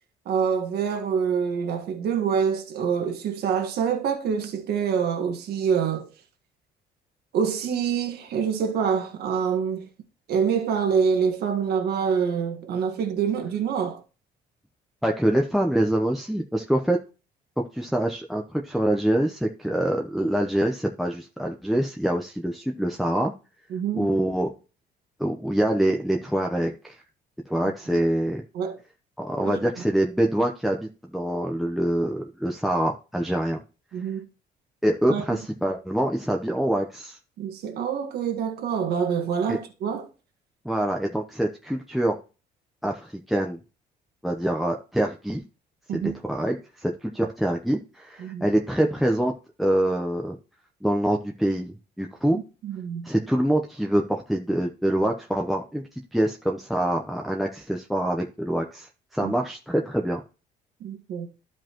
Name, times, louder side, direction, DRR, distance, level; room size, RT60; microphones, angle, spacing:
voice 1, 0.2-6.0 7.3-9.9 10.3-14.0 23.7-24.1 28.5-28.8 29.4-29.6 33.9-34.3 35.1-35.4 37.4-40.1 45.9-46.2 48.2-48.5 52.3-53.1 59.2-59.3 60.8-61.3, right 7 dB, 70° right, 1.7 m, -26 dB
voice 2, 15.0-17.0 17.7-23.3 24.0-24.6 25.2-27.0 27.5-28.4 29.2-33.6 34.8-37.2 39.5-39.6 40.6-42.2 42.8-43.6 44.2-45.4 45.9-49.3 49.6-50.3 50.8-52.4 53.0-55.8 56.1-60.2, right 1 dB, ahead, 0.8 m, -25 dB
12.0 x 5.1 x 3.0 m
cardioid pair, 110°, 17 cm